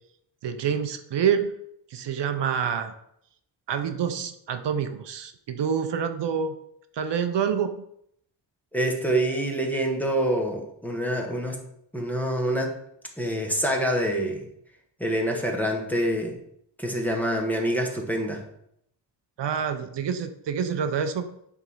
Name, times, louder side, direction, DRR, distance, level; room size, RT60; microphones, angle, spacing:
voice 1, 0.4-1.5 1.9-2.9 3.7-6.6 6.9-7.8 19.4-21.4, right 7 dB, 70° right, 9 dB, 0.7 m, -27 dB
voice 2, 8.7-11.6 11.9-12.8 13.2-14.5 15.0-16.4 16.8-18.4, right 1 dB, 5° left, 1 dB, 1.1 m, -26 dB
9.0 x 3.6 x 5.5 m, 0.74 s
wide cardioid pair, 160°, 45 cm